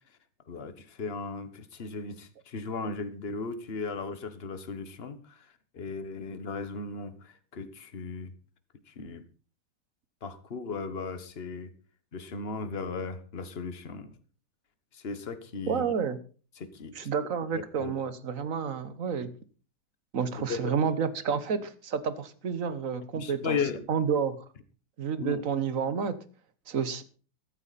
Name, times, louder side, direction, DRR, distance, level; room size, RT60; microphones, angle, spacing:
voice 1, 0.5-5.5 5.7-8.3 8.9-9.2 10.2-11.7 12.1-14.1 14.9-16.0 16.6-17.1 17.5-17.9 20.4-20.8 23.1-23.8 25.2-25.4, left 4 dB, 35° left, 11 dB, 1.4 m, -36 dB
voice 2, 15.7-16.2 16.9-19.3 20.1-23.6 23.9-24.4 25.0-26.1 26.7-27.0, right 6 dB, 50° right, 13 dB, 1.5 m, -30 dB
14.0 x 12.5 x 4.2 m, 0.38 s
omnidirectional pair, 1.9 m